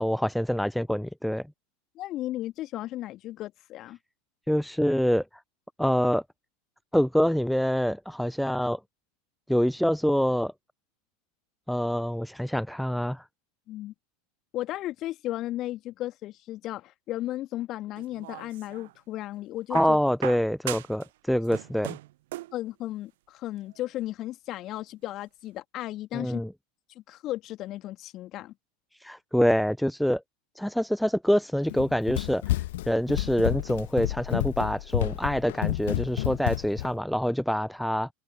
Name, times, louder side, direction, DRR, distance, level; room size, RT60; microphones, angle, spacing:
voice 1, 0.0-1.4 4.5-5.2 5.8-6.2 6.9-8.8 9.5-10.5 11.7-13.2 19.7-22.0 26.1-26.5 29.0-30.2 30.6-32.4 32.9-38.1, equal, ahead, 0.7 m, -25 dB
voice 2, 2.0-4.0 13.7-13.9 14.5-20.0 22.5-26.4 27.1-28.5, left 15 dB, 40° left, 2.1 m, -35 dB
sound 1, 18.0-19.0 19.7-21.1 21.4-22.6 23.7-23.8, right 17 dB, 60° right, 1.0 m, -39 dB
Run, 31.7-36.9, left 16 dB, 60° left, 1.5 m, -30 dB
figure-of-eight pair, 80°, 0 cm